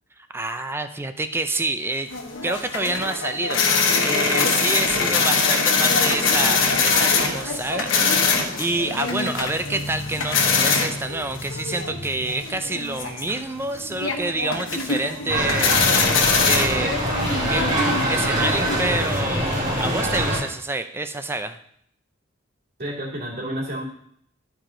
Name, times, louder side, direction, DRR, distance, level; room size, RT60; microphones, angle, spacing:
voice 1, 0.3-2.1 2.4-17.0 17.5-17.7 18.1-21.6, right 2 dB, 10° right, 9 dB, 0.4 m, -28 dB
sound 1, 2.1-20.0, left 4 dB, 75° left, 1.2 m, -23 dB
sound 2, 15.3-20.4, right 1 dB, 40° right, 2.0 m, -24 dB
voice 2, 22.8-23.8, right 1 dB, 55° right, -5 dB, 2.7 m, -30 dB
11.5 x 4.7 x 3.8 m, 0.69 s
head